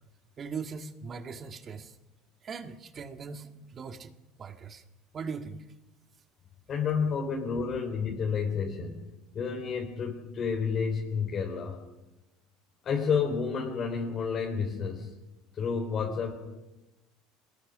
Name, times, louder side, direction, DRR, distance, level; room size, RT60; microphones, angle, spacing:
voice 1, 0.4-1.9 2.4-4.1 4.4-4.8 5.1-5.6, right 5 dB, 30° right, 6 dB, 1.7 m, -40 dB
voice 2, 6.7-9.0 9.3-11.8 12.8-15.1 15.5-16.3, left 6 dB, 35° left, 0 dB, 3.7 m, -30 dB
25.0 x 21.0 x 6.3 m, 1.0 s
cardioid pair, 140°, 0 cm